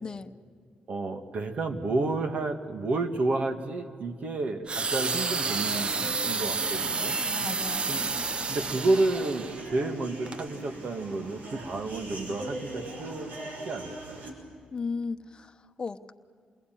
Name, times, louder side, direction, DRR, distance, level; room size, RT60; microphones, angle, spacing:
voice 1, 0.0-0.3 7.4-7.9 14.7-16.1, left 4 dB, 30° left, 7 dB, 1.0 m, -35 dB
voice 2, 0.9-7.2 7.9-8.1 8.5-13.3 13.6-14.3, right 2 dB, 55° right, 6 dB, 2.2 m, -30 dB
sound 1, 4.7-9.6 10.3-10.4, right 4 dB, 40° right, 0.9 m, -30 dB
sound 2, 5.0-14.3, right 1 dB, 80° right, 6.1 m, -40 dB
28.5 x 21.0 x 9.4 m, 2.2 s
cardioid pair, 105°, 3 cm